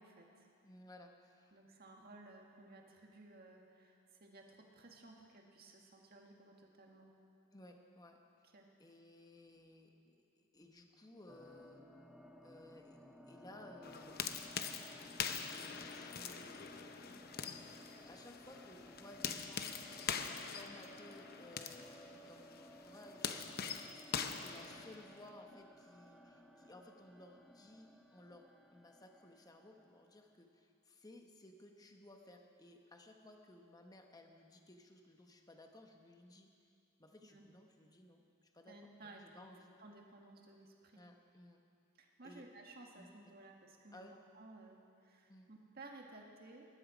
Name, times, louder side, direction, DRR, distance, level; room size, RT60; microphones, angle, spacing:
voice 1, 0.0-0.5 1.5-4.0 4.2-7.1 8.5-8.7 37.3-37.4 38.7-39.5 39.8-41.0 42.0-44.0 44.3-46.7, right 2 dB, 50° right, 1 dB, 1.9 m, -57 dB
voice 2, 0.6-1.5 7.5-8.2 8.8-11.8 12.4-13.0 13.3-14.2 15.4-16.7 18.1-19.7 20.1-23.6 23.9-36.5 37.0-39.7 40.9-41.6 42.2-42.4 43.0-43.1 43.9-44.2 45.3-45.5, left 1 dB, 20° left, 3 dB, 1.0 m, -58 dB
sound 1, 11.3-30.2, equal, ahead, 0.7 m, -58 dB
sound 2, 13.8-25.3, left 6 dB, 50° left, 0.7 m, -44 dB
21.0 x 11.5 x 5.1 m, 2.4 s
head